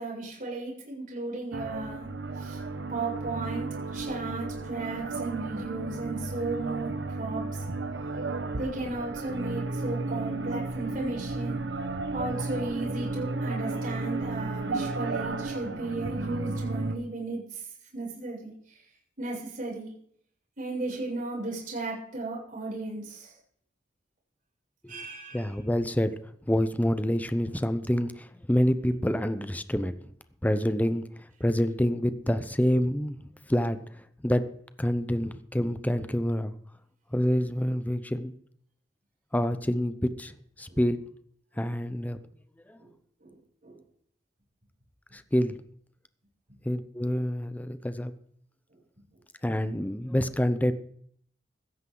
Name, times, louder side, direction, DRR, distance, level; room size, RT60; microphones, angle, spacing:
voice 1, 0.0-2.1 2.4-2.6 2.9-7.6 8.6-11.6 12.1-17.6 17.9-18.8 19.2-19.9 20.6-23.3 24.9-25.5 40.7-40.8 42.8-42.9 43.2-43.8, right 2 dB, 50° right, -5 dB, 6.9 m, -35 dB
sound 1, 1.5-17.0, right 3 dB, 75° right, 1.2 m, -33 dB
voice 2, 25.3-26.1 26.5-30.0 30.4-33.2 33.5-34.5 34.8-36.5 37.1-38.3 39.3-40.3 40.6-41.0 41.6-42.2 42.7-42.8 45.1-45.6 46.6-48.1 49.4-50.7, equal, 10° left, 11 dB, 0.7 m, -27 dB
16.0 x 13.5 x 3.9 m, 0.64 s
head